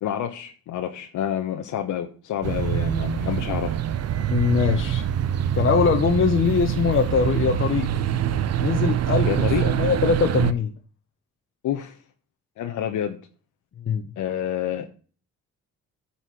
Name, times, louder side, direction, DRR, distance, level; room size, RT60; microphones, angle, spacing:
voice 1, 0.0-3.8 9.2-9.6 11.6-12.0 12.6-13.2 14.2-14.9, left 10 dB, 75° left, 1.0 m, -28 dB
sound 1, 2.4-10.5, right 10 dB, 55° right, 0.7 m, -24 dB
voice 2, 4.3-5.1 5.5-7.9 8.6-9.3 9.6-10.7 13.9-14.0, left 6 dB, 45° left, 1.0 m, -22 dB
9.3 x 4.4 x 5.8 m
cardioid pair, 90°, 30 cm